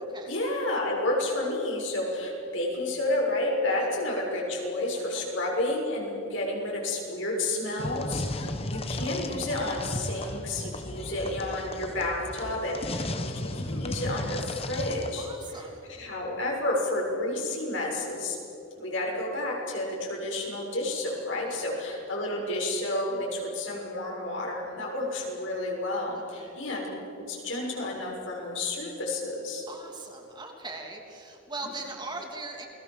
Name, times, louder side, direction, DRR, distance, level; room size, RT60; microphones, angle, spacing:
voice 1, 0.3-15.3 15.6-15.7 16.0-18.4 18.8-26.9 27.3-29.6, left 1 dB, 70° left, -1 dB, 6.6 m, -30 dB
sound 1, 7.8-15.1, left 1 dB, 30° left, 1.3 m, -34 dB
voice 2, 8.1-8.5 15.2-15.8 21.5-21.7 26.1-26.6 29.7-32.7, right 3 dB, 20° right, 1 dB, 3.0 m, -41 dB
29.0 x 21.0 x 7.4 m, 2.9 s
head